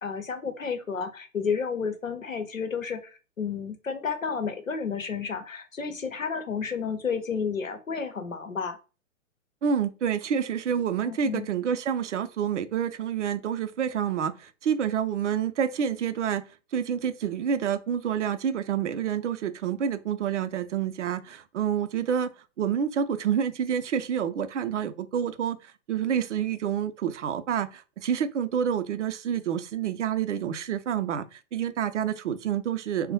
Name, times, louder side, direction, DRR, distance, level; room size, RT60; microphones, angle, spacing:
voice 1, 0.0-3.1 3.4-8.8 11.0-11.5, left 6 dB, 85° left, 0.8 m, -31 dB
voice 2, 9.6-16.4 16.7-22.3 22.6-33.1, right 8 dB, 65° right, 0.5 m, -28 dB
3.2 x 2.1 x 2.8 m
figure-of-eight pair, 110°, 39 cm